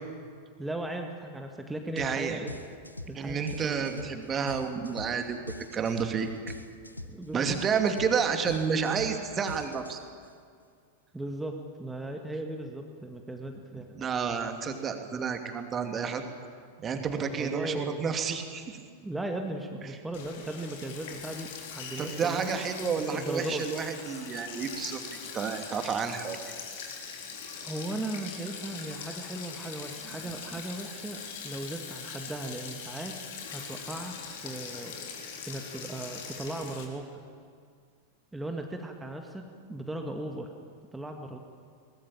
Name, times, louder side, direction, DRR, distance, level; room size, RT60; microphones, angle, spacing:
voice 1, 0.6-2.5 3.1-4.0 7.0-7.6 11.1-11.5 11.8-13.9 17.2-18.1 19.0-22.6 23.1-23.6 27.6-31.2 31.4-33.1 33.5-34.1 34.4-34.9 35.4-37.2 38.3-39.4 39.7-40.5 40.9-41.4, right 1 dB, 5° right, 3 dB, 2.0 m, -37 dB
sound 1, 2.0-2.2 2.5-10.3, left 1 dB, 85° left, 1.2 m, -42 dB
voice 2, 2.0-2.4 3.1-6.5 7.3-10.0 13.9-16.2 16.8-18.8 22.0-25.0 25.3-26.4, right 6 dB, 25° right, 5 dB, 2.6 m, -30 dB
Sink (filling or washing), 20.1-36.8, left 6 dB, 55° left, 3.7 m, -42 dB
23.0 x 20.0 x 8.9 m, 2.2 s
figure-of-eight pair, 90°, 0 cm